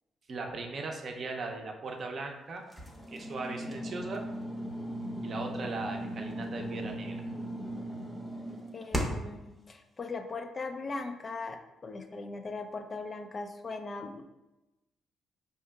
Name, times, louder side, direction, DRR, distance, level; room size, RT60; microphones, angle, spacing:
voice 1, 0.3-2.6 3.1-4.2 5.2-7.2, right 3 dB, 50° right, 2 dB, 0.6 m, -38 dB
sound 1, 2.7-9.4, equal, 5° left, 0.7 m, -37 dB
voice 2, 8.7-14.2, left 3 dB, 35° left, 6 dB, 0.4 m, -39 dB
4.4 x 2.8 x 2.3 m, 1.0 s
cardioid pair, 90°, 0 cm